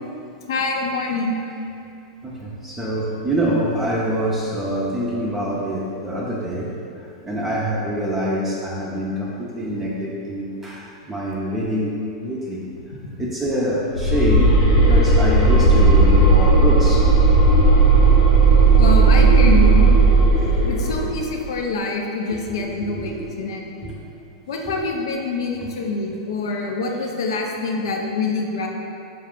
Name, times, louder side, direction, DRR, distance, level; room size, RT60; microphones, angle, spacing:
voice 1, 0.5-1.4 13.0-13.1 18.8-19.9 20.6-23.6 24.5-28.7, left 3 dB, 70° left, 1 dB, 0.5 m, -25 dB
voice 2, 2.2-6.7 7.2-12.0 12.2-12.6 13.2-17.1 22.9-23.3 23.8-23.9 24.6-24.7, right 1 dB, 15° right, -6 dB, 0.5 m, -25 dB
sound 1, 13.9-21.2, right 3 dB, 85° left, 1.3 m, -14 dB
4.8 x 2.3 x 3.5 m, 2.6 s
hypercardioid pair, 100°, 2 cm